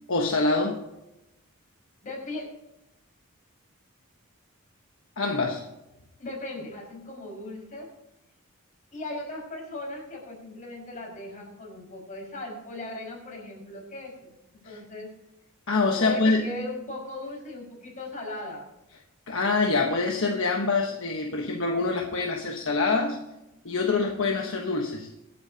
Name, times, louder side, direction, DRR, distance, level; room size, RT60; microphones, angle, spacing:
voice 1, 0.1-0.9 5.2-5.6 14.6-14.8 15.7-16.6 19.3-23.3 23.6-25.1, left 3 dB, 60° left, 1 dB, 1.2 m, -25 dB
voice 2, 2.0-2.5 6.2-7.9 8.9-15.1 16.0-18.7, left 2 dB, 35° left, -1 dB, 5.5 m, -38 dB
25.0 x 8.9 x 2.8 m, 0.93 s
head